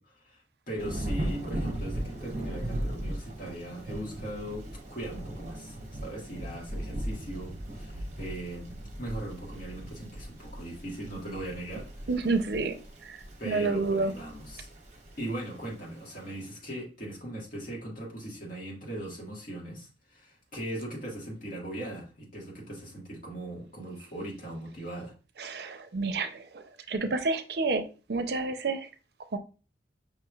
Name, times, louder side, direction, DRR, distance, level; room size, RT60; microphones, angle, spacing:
voice 1, 0.0-12.1 13.4-14.7 15.2-25.1, right 1 dB, 50° left, 1.6 m, -39 dB
Thunder / Rain, 0.8-16.4, right 1 dB, 40° right, 0.8 m, -38 dB
voice 2, 12.1-12.8 13.0-13.2 13.4-14.1 25.4-28.9 29.3-29.4, right 3 dB, 65° right, 0.5 m, -29 dB
5.6 x 3.1 x 2.3 m
head